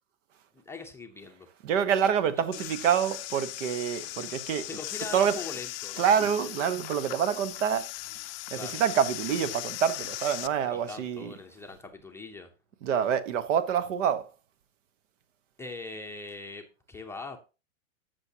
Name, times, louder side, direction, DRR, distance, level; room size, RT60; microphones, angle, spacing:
voice 1, 0.7-1.5 2.6-2.7 4.6-6.0 8.5-8.8 10.7-12.5 15.6-17.4, left 3 dB, 5° left, 0.7 m, -41 dB
voice 2, 1.6-4.7 5.1-5.4 6.0-7.9 8.5-11.3 12.8-14.3, right 8 dB, 65° right, 1.2 m, -27 dB
sound 1, 2.5-10.5, left 19 dB, 45° left, 0.6 m, -38 dB
14.0 x 6.4 x 2.8 m
hypercardioid pair, 135°, 41 cm